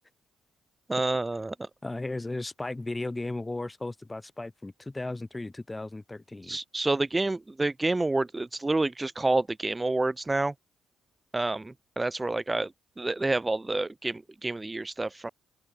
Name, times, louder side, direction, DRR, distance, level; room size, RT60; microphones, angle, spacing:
voice 1, 0.9-1.5 6.4-10.5 11.3-12.7 13.0-15.3, right 2 dB, 15° right, 0.4 m, -28 dB
voice 2, 1.8-6.6, left 2 dB, 15° left, 4.9 m, -35 dB
open air
cardioid pair, 90°, 0 cm